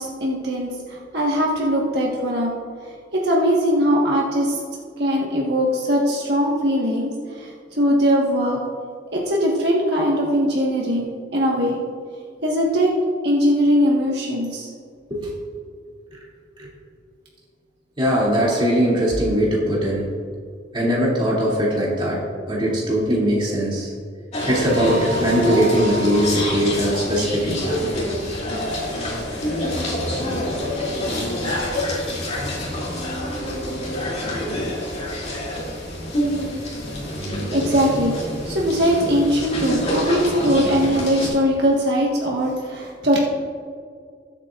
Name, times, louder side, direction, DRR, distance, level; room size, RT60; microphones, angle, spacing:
voice 1, 0.0-2.5 3.1-4.6 5.0-8.6 9.1-11.8 12.4-12.9 13.2-14.7 37.2-43.2, equal, 65° right, -3 dB, 1.5 m, -21 dB
voice 2, 18.0-20.0 20.7-22.2 22.5-23.9 24.5-27.8, equal, 30° right, -5 dB, 2.7 m, -21 dB
sound 1, 24.3-41.3, left 1 dB, 40° left, 2.7 m, -26 dB
20.5 x 8.3 x 2.5 m, 2.1 s
head